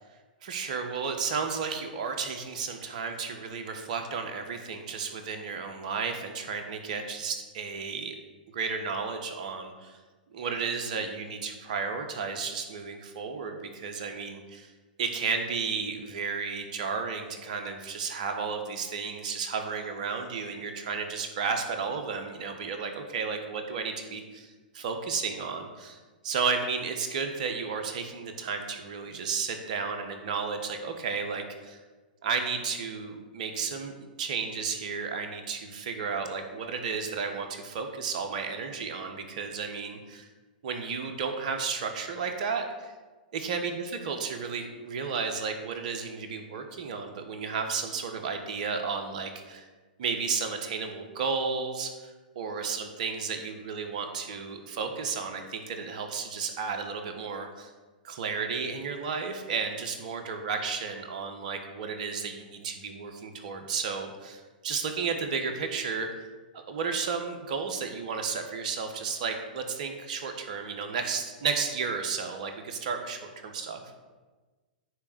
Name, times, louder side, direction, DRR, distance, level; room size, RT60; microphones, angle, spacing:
voice 1, 0.4-8.1 8.5-10.0 10.3-14.7 15.0-26.0 26.2-31.8 32.2-40.2 40.6-42.9 43.3-49.7 50.0-57.7 58.0-66.1 66.5-73.8, right 5 dB, 60° right, 5 dB, 1.3 m, -33 dB
9.6 x 3.6 x 7.0 m, 1.3 s
hypercardioid pair, 115°, 5 cm